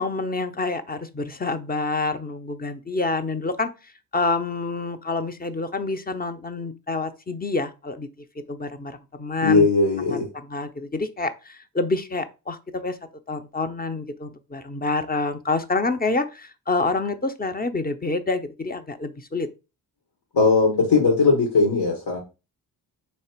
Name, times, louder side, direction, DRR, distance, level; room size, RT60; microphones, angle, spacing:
voice 1, 0.0-8.1 8.5-9.7 10.1-13.0 13.3-19.5, left 3 dB, 20° left, 0.7 m, -27 dB
voice 2, 9.4-10.2 20.3-22.2, left 4 dB, 80° left, 1.5 m, -19 dB
3.3 x 3.2 x 4.4 m
supercardioid pair, 50°, 41 cm